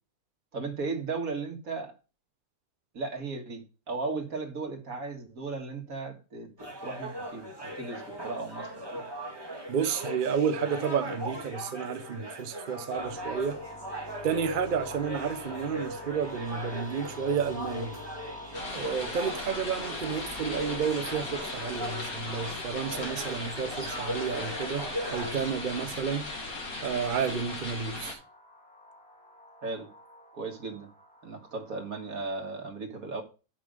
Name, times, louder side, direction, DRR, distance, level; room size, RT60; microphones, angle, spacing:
voice 1, 0.5-2.0 2.9-9.0 29.6-29.9 30.3-30.9 31.2-33.2, right 3 dB, 80° right, 2.2 m, -36 dB
sound 1, 6.6-25.3, equal, 15° right, 2.2 m, -39 dB
voice 2, 9.7-13.6 14.2-17.9 18.7-26.3 26.8-28.2, right 7 dB, 45° right, 0.8 m, -31 dB
sound 2, 12.9-32.2, left 1 dB, 5° left, 1.7 m, -47 dB
sound 3, 18.5-28.1, left 2 dB, 85° left, 2.6 m, -38 dB
9.9 x 5.4 x 5.1 m
omnidirectional pair, 1.5 m